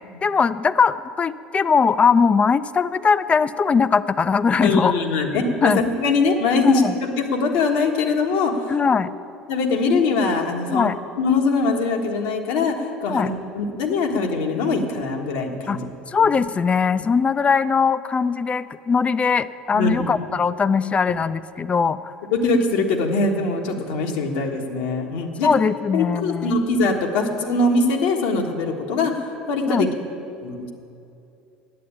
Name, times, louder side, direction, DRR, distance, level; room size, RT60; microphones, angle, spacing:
voice 1, 0.2-4.9 5.6-5.8 6.6-6.9 8.7-9.1 10.7-11.0 13.1-13.3 15.7-15.8 16.1-22.1 25.4-26.6 29.7-29.9, left 5 dB, 25° left, 15 dB, 0.4 m, -20 dB
voice 2, 4.6-8.7 9.5-10.9 11.2-12.7 13.0-15.8 16.2-16.3 19.7-20.1 22.3-25.5 25.9-29.9 30.4-30.7, left 3 dB, 70° left, 2 dB, 1.4 m, -22 dB
9.5 x 8.6 x 8.7 m, 2.7 s
hypercardioid pair, 70°, 5 cm